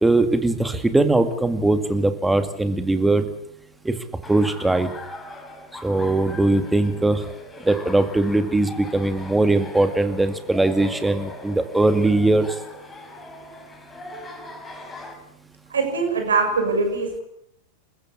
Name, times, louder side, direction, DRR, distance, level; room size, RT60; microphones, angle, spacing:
voice 1, 0.0-3.3 3.8-3.9 4.3-4.9 5.8-7.3 7.6-12.6, right 2 dB, 5° right, 8 dB, 2.2 m, -20 dB
Laughter, 4.2-15.1, left 2 dB, 15° left, 5.0 m, -39 dB
voice 2, 15.7-17.2, right 4 dB, 70° right, 4 dB, 6.9 m, -22 dB
27.5 x 15.0 x 8.6 m, 0.77 s
figure-of-eight pair, 90°, 0 cm